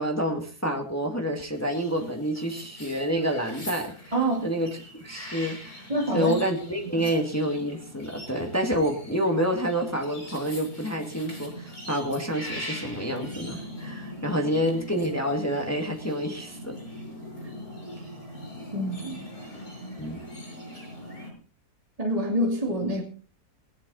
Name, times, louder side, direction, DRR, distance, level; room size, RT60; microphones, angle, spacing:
voice 1, 0.0-4.1 4.4-5.9 6.1-16.8 20.0-20.2, equal, 10° left, 3 dB, 2.1 m, -28 dB
sound 1, 1.5-21.3, left 1 dB, 70° left, 6.3 m, -41 dB
voice 2, 4.1-4.5 5.9-6.4 7.0-7.1 18.7-19.2 22.0-23.0, right 1 dB, 20° right, 1 dB, 2.3 m, -26 dB
18.0 x 11.5 x 4.1 m, 0.37 s
omnidirectional pair, 1.7 m